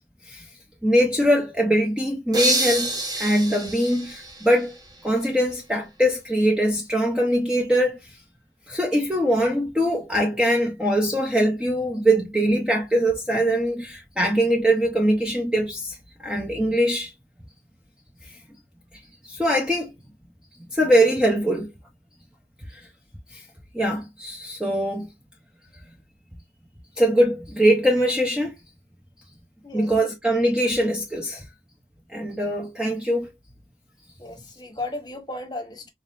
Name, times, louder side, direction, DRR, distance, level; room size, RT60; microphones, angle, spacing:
voice 1, 0.8-2.9 3.2-4.8 5.0-8.2 8.7-17.1 18.2-18.4 19.2-19.9 20.7-21.7 22.7-22.9 23.3-23.4 23.7-25.1 27.0-28.5 29.7-31.4 32.1-33.3, equal, 5° right, 0.6 m, -22 dB
sound 1, 2.3-5.1, right 1 dB, 20° right, 0.9 m, -27 dB
voice 2, 34.2-35.9, left 2 dB, 25° left, 1.1 m, -34 dB
3.9 x 3.6 x 2.4 m
head